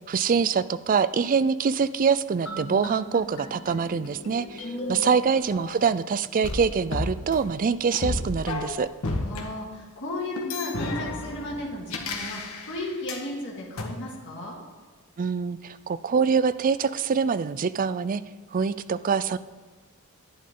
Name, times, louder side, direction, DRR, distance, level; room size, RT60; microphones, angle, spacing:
voice 1, 0.1-8.9 15.2-18.2 18.5-19.4, right 6 dB, 40° right, 14 dB, 0.4 m, -24 dB
sound 1, 2.5-6.0 6.4-9.4 10.4-13.3 13.8-13.9, left 2 dB, 70° left, 1.5 m, -34 dB
voice 2, 4.6-5.2 9.2-14.6, left 1 dB, 55° left, -4 dB, 2.2 m, -35 dB
11.0 x 10.5 x 3.8 m, 1.5 s
head